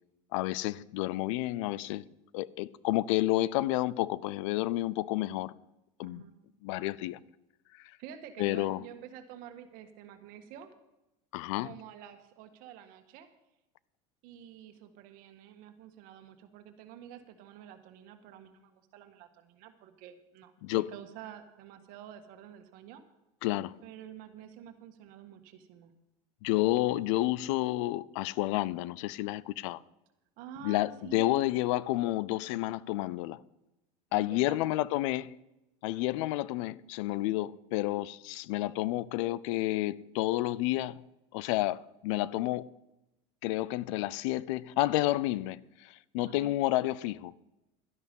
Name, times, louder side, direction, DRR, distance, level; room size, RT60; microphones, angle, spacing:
voice 1, 0.3-2.0 2.3-5.5 6.0-6.2 6.6-7.2 8.4-8.8 11.3-11.7 20.6-20.9 23.4-23.8 26.4-29.8 30.6-33.4 34.1-35.3 35.8-41.0 41.3-42.7 43.4-47.3, left 17 dB, 70° left, 0.5 m, -30 dB
voice 2, 6.0-6.3 8.0-10.7 11.6-13.3 14.2-23.0 23.8-25.9 30.4-31.6 34.1-34.6 46.3-46.5, right 8 dB, 60° right, 1.7 m, -49 dB
12.5 x 11.0 x 5.4 m
supercardioid pair, 110°, 16 cm